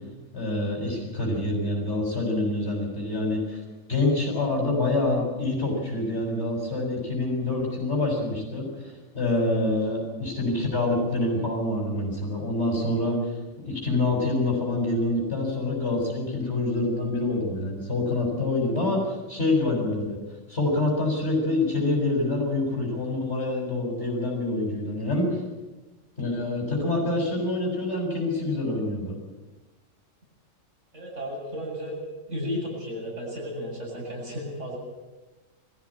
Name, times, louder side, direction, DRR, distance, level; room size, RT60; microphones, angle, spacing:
voice 1, 0.3-3.6 3.9-13.2 13.6-20.2 20.5-25.4 26.2-29.1, left 2 dB, 50° left, -2 dB, 6.7 m, -26 dB
voice 2, 30.9-32.0 32.3-34.8, equal, 65° right, -3 dB, 8.6 m, -33 dB
21.0 x 15.0 x 9.9 m, 1.1 s
omnidirectional pair, 1.4 m